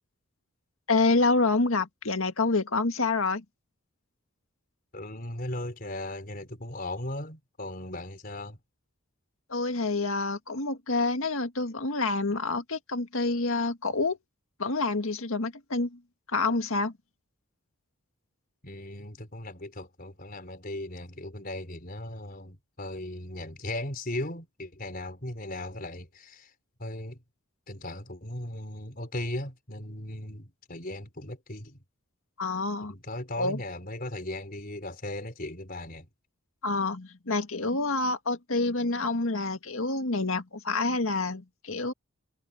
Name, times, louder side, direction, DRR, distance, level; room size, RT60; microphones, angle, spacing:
voice 1, 0.9-3.4 9.5-14.2 14.6-16.0 16.3-16.9 32.4-32.9 33.4-33.6 36.6-41.9, left 3 dB, 75° left, 1.9 m, -27 dB
voice 2, 4.9-8.6 18.6-26.5 26.8-27.2 27.7-31.8 32.9-36.1, left 1 dB, 45° left, 4.6 m, -37 dB
head